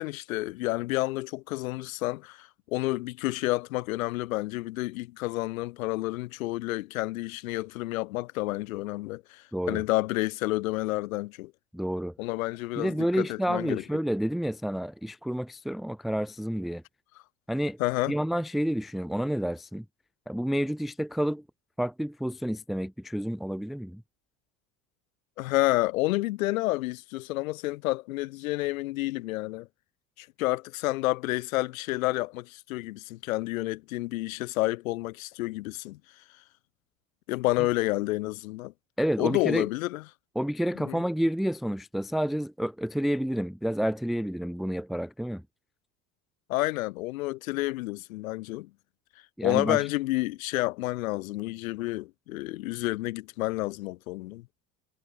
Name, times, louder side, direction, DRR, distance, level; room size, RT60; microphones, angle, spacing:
voice 1, 0.0-11.5 12.2-13.8 17.8-18.2 25.4-29.7 30.2-36.0 37.3-38.7 39.2-40.0 40.8-41.0 46.5-48.7 49.4-54.5, left 19 dB, 85° left, 1.1 m, -30 dB
voice 2, 9.5-9.8 11.7-12.1 12.8-16.8 17.5-17.8 18.1-19.8 20.3-21.4 21.8-24.0 39.0-39.7 40.4-45.4 49.4-49.9, equal, ahead, 0.7 m, -29 dB
supercardioid pair, 95°, 40 cm